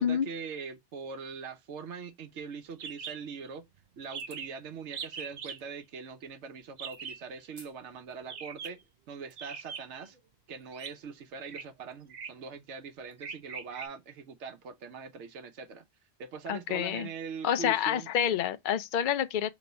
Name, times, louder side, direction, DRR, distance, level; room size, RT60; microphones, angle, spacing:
voice 1, 0.0-3.7 4.0-8.8 9.1-10.2 10.5-15.8 16.2-18.1, right 5 dB, 70° right, 1.0 m, -42 dB
sound 1, 2.8-3.2 3.5-3.6 3.8-3.9 4.1-4.6 4.9-5.6 6.8-7.2 8.2-8.8 9.4-10.1 10.7-10.9 11.5-11.6 12.1-12.5 13.2-13.9, right 6 dB, 50° right, 0.5 m, -41 dB
sound 2, 4.1-4.5 5.6-5.7 7.5-7.8 8.2-8.3 9.0-9.4, right 2 dB, 35° right, 1.3 m, -55 dB
voice 2, 16.5-17.1 17.4-19.5, left 9 dB, 60° left, 0.5 m, -28 dB
3.4 x 3.0 x 3.9 m
omnidirectional pair, 1.2 m